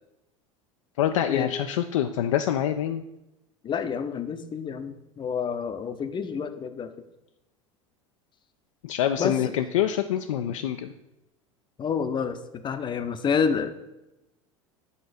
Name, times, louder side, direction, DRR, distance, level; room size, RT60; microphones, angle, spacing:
voice 1, 1.0-3.0 8.8-10.9, left 10 dB, 75° left, 6 dB, 0.4 m, -26 dB
voice 2, 3.6-6.9 9.2-9.5 11.8-13.9, left 6 dB, 30° left, 9 dB, 0.7 m, -29 dB
8.0 x 3.8 x 5.0 m, 0.94 s
hypercardioid pair, 80°, 17 cm